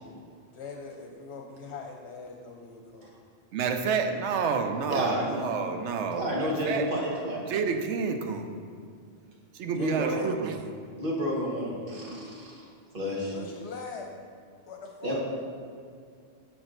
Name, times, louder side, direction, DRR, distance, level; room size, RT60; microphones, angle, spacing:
voice 1, 0.5-3.1 9.8-10.3 13.3-14.1 14.7-15.2, left 4 dB, 75° left, 1 dB, 0.9 m, -41 dB
voice 2, 3.5-6.9 7.4-8.6 9.5-10.6, right 5 dB, 90° right, 7 dB, 0.9 m, -29 dB
voice 3, 4.9-5.4 6.1-7.4 9.7-10.1 11.0-12.6 12.9-13.3 15.0-15.2, equal, 50° right, -3 dB, 1.5 m, -30 dB
6.7 x 6.1 x 3.8 m, 2.2 s
omnidirectional pair, 1.2 m